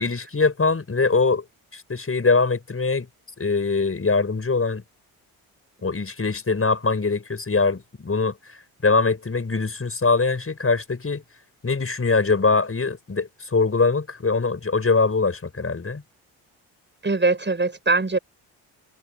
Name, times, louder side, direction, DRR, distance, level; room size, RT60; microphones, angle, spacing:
voice 1, 0.0-1.4 1.7-3.1 3.4-4.8 5.8-11.2 11.6-16.0, left 4 dB, 30° left, 6.6 m, -22 dB
voice 2, 17.0-18.2, right 3 dB, 25° right, 6.6 m, -21 dB
supercardioid pair, 55°, 44 cm